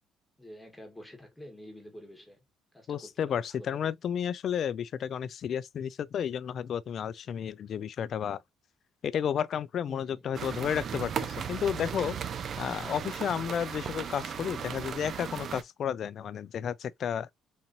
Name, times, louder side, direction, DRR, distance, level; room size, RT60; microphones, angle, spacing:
voice 1, 0.4-2.4 2.7-3.9 9.9-10.8, left 1 dB, 5° left, 1.3 m, -48 dB
voice 2, 2.9-8.4 9.0-12.2 12.6-17.3, left 8 dB, 55° left, 0.3 m, -32 dB
sound 1, 10.3-15.6, right 7 dB, 55° right, 0.5 m, -36 dB
4.0 x 2.9 x 2.6 m
cardioid pair, 85°, 0 cm